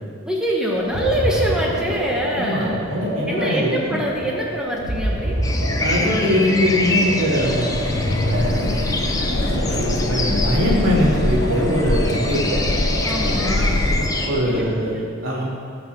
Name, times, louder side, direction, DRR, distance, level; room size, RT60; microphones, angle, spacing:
voice 1, 0.3-2.8 3.3-5.4 13.0-13.8 14.4-14.7 14.9-15.0, right 1 dB, 5° right, -3 dB, 1.1 m, -24 dB
sound 1, 0.7-14.7, equal, 50° right, 3.1 m, -27 dB
voice 2, 2.4-4.0 5.8-7.8 8.3-8.8 9.3-12.6 13.2-13.8 14.2-15.4, left 1 dB, 75° right, -5 dB, 2.8 m, -22 dB
sound 2, 5.4-14.3, left 2 dB, 15° left, 0.8 m, -25 dB
sound 3, 7.4-14.1, left 2 dB, 50° left, 0.6 m, -25 dB
18.0 x 6.0 x 6.4 m, 2.3 s
head